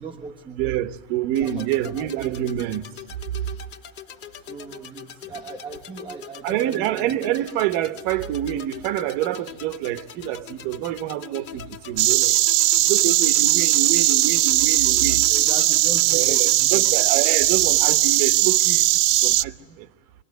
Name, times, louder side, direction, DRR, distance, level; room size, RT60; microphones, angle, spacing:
voice 1, 0.0-0.9 1.4-2.5 4.4-7.2 15.3-16.9, right 4 dB, 15° right, 1.4 m, -38 dB
voice 2, 0.6-2.8 6.4-12.3 12.9-15.2 16.1-18.8 19.2-19.5, right 13 dB, 70° right, 1.2 m, -26 dB
sound 1, 1.3-17.3, left 9 dB, 45° left, 3.3 m, -42 dB
Insect, 12.0-19.4, right 17 dB, 85° right, 0.8 m, -19 dB
26.0 x 23.5 x 9.4 m
cardioid pair, 145°, 33 cm